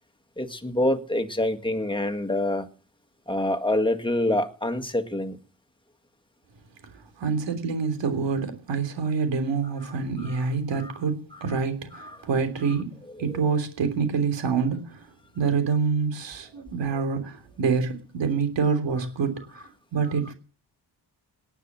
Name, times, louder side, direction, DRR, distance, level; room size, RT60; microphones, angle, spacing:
voice 1, 0.4-2.7 3.3-5.4 10.2-10.4 10.7-10.9 11.3-11.5 11.9-12.3 13.2-13.4 20.0-20.1, left 1 dB, 10° left, 1.8 m, -27 dB
voice 2, 7.2-12.9 13.2-15.1 15.3-19.6 19.9-20.3, right 5 dB, 85° right, 3.3 m, -26 dB
18.5 x 9.6 x 7.3 m
wide cardioid pair, 105°, 42 cm